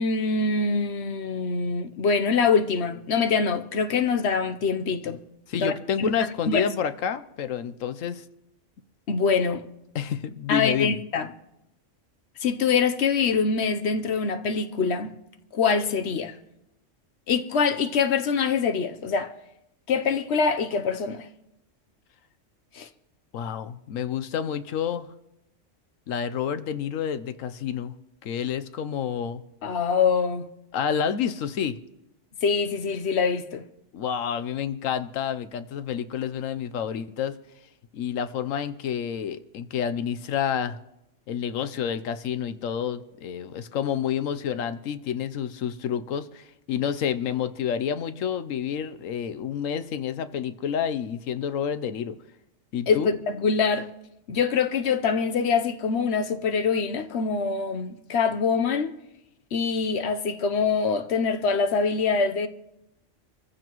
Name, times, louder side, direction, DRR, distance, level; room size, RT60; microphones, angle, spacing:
voice 1, 0.0-5.2 5.6-6.1 6.5-6.6 9.1-9.6 10.5-11.3 12.4-15.1 15.5-16.3 17.3-19.3 19.9-21.3 22.7-22.9 29.6-30.5 32.4-33.6 52.9-53.9 54.3-58.9 59.5-62.5, left 5 dB, 60° left, 1.1 m, -24 dB
voice 2, 5.5-8.2 9.9-11.0 23.3-25.1 26.1-27.9 28.2-29.4 30.7-31.8 33.9-37.3 37.9-40.8 41.3-52.2 52.7-53.1, left 8 dB, 90° left, 1.1 m, -29 dB
25.5 x 15.0 x 3.1 m
omnidirectional pair, 1.3 m